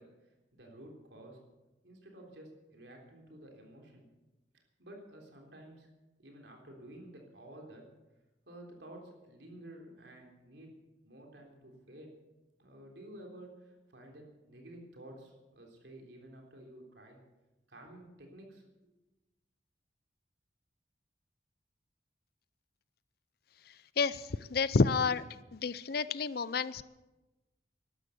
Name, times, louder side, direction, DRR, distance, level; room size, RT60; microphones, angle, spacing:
voice 1, 0.0-1.4 1.8-4.0 4.8-5.9 6.2-7.9 8.5-10.7 11.0-12.1 12.6-17.2 17.7-18.9, right 1 dB, 65° right, 1 dB, 3.6 m, -52 dB
voice 2, 24.0-25.2 25.5-26.8, left 4 dB, 50° left, 16 dB, 0.5 m, -29 dB
13.0 x 12.0 x 8.1 m, 1.1 s
head